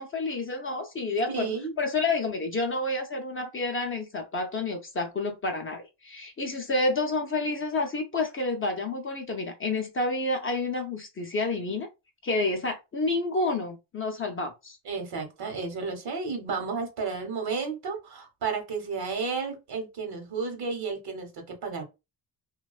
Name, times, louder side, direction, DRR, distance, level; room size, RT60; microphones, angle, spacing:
voice 1, 0.0-11.9 12.2-14.8, left 2 dB, 30° left, 0.4 m, -29 dB
voice 2, 1.3-1.7 14.8-21.8, right 4 dB, 60° right, 0.9 m, -32 dB
2.4 x 2.2 x 2.3 m
cardioid pair, 125°, 43 cm